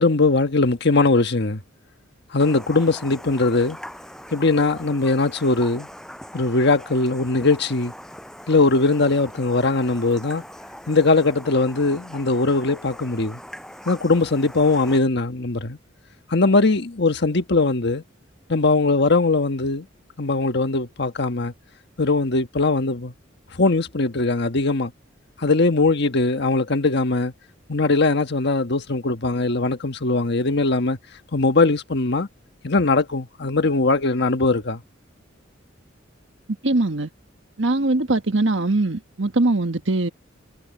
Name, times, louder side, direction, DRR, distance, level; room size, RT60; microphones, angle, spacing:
voice 1, 0.0-1.6 2.3-3.8 4.3-5.9 6.3-7.9 8.5-10.4 10.9-13.4 13.8-15.8 16.3-18.0 18.5-19.9 20.2-21.5 22.0-23.1 23.5-24.9 25.4-27.3 27.7-31.0 31.3-32.3 32.6-34.8, left 3 dB, 60° left, 1.4 m, -20 dB
Raindrop, 2.4-15.0, equal, 5° left, 7.1 m, -41 dB
voice 2, 36.6-37.1 37.6-40.1, right 2 dB, 70° right, 1.5 m, -21 dB
head